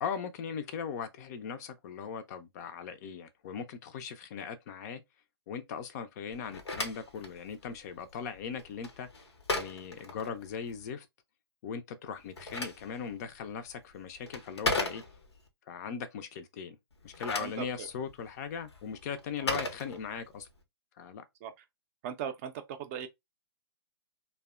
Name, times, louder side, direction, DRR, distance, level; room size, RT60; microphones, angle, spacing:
voice 1, 0.0-5.0 5.5-9.2 9.5-11.1 11.6-15.0 15.7-16.8 17.0-20.5 21.0-21.2, left 6 dB, 40° left, 0.4 m, -39 dB
Telephone, 6.3-10.8 12.1-15.5 16.9-20.5, left 2 dB, 90° left, 0.7 m, -38 dB
voice 2, 17.4-17.9 19.4-19.6 21.4-21.6 22.0-23.1, right 8 dB, 35° right, 0.4 m, -39 dB
2.6 x 2.1 x 2.3 m
hypercardioid pair, 130°, 14 cm